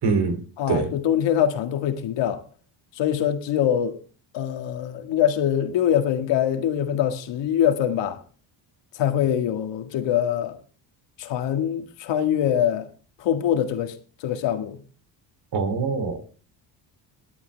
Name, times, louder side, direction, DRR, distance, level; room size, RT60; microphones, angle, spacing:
voice 1, 0.0-0.9 15.5-16.2, right 4 dB, 55° right, 3.3 m, -24 dB
voice 2, 0.6-2.4 3.0-4.0 4.3-8.2 9.0-10.6 11.2-12.9 13.2-13.9 14.2-14.8, left 10 dB, 65° left, 1.9 m, -23 dB
20.5 x 8.8 x 3.4 m
supercardioid pair, 80°, 46 cm